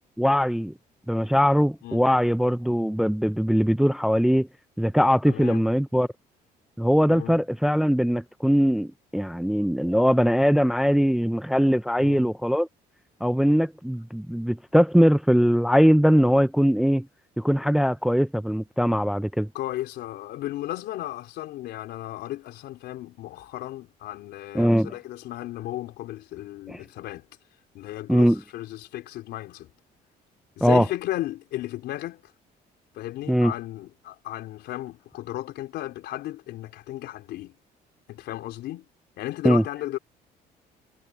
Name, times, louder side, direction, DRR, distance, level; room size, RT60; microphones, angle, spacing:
voice 1, 0.2-0.7 1.1-4.5 4.8-6.1 6.8-12.7 13.2-17.1 17.4-19.5 24.5-24.9 26.7-26.8 28.1-28.4 30.6-30.9 33.3-33.5 39.4-39.6, equal, ahead, 0.4 m, -21 dB
voice 2, 5.3-5.7 7.1-7.4 12.0-12.2 19.5-27.3 27.7-29.7 30.6-32.3 32.9-37.6 38.1-38.9 39.2-40.0, left 14 dB, 80° left, 3.7 m, -35 dB
cardioid pair, 110°, 17 cm